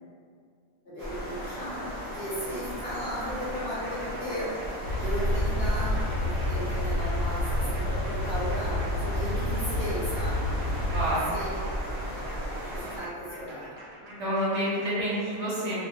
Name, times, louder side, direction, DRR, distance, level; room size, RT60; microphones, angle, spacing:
voice 1, 0.8-10.5 11.3-11.5 12.6-13.7, equal, 50° left, -11 dB, 0.9 m, -36 dB
sound 1, 1.0-13.0, equal, 35° right, 0.6 m, -35 dB
sound 2, 3.3-15.0, right 1 dB, 85° right, 0.4 m, -46 dB
sound 3, 4.8-11.1, left 1 dB, 80° left, 1.0 m, -29 dB
voice 2, 10.9-11.3 14.2-15.8, equal, 65° right, -8 dB, 0.8 m, -28 dB
2.3 x 2.2 x 2.7 m, 2.2 s
omnidirectional pair, 1.4 m